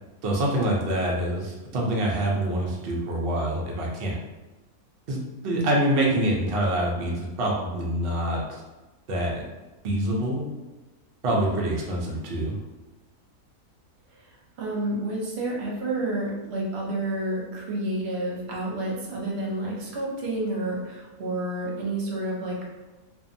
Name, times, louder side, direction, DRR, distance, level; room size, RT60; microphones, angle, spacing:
voice 1, 0.2-4.2 5.1-8.6 9.1-9.4 9.8-10.5 11.2-12.6, right 1 dB, 85° right, -3 dB, 0.5 m, -26 dB
voice 2, 14.1-22.9, right 1 dB, 55° right, -3 dB, 0.8 m, -30 dB
2.6 x 2.2 x 2.5 m, 1.1 s
omnidirectional pair, 1.6 m